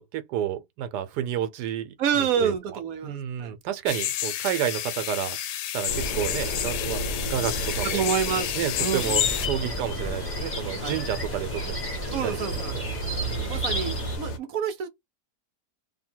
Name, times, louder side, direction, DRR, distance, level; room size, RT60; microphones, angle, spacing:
voice 1, 0.0-2.5 3.0-5.4 5.7-8.1 8.6-11.9 12.2-12.4 12.7-12.8 13.2-13.6, right 10 dB, 85° right, 1.2 m, -30 dB
voice 2, 2.0-3.6 7.8-9.2 10.8-11.0 12.1-12.8 13.5-14.9, right 7 dB, 65° right, 1.0 m, -28 dB
sound 1, 3.9-9.5, left 11 dB, 85° left, 1.2 m, -30 dB
sound 2, 5.9-14.4, equal, 55° left, 1.5 m, -32 dB
sound 3, 9.0-14.2, left 1 dB, 10° left, 1.4 m, -34 dB
2.8 x 2.7 x 4.3 m
omnidirectional pair, 1.8 m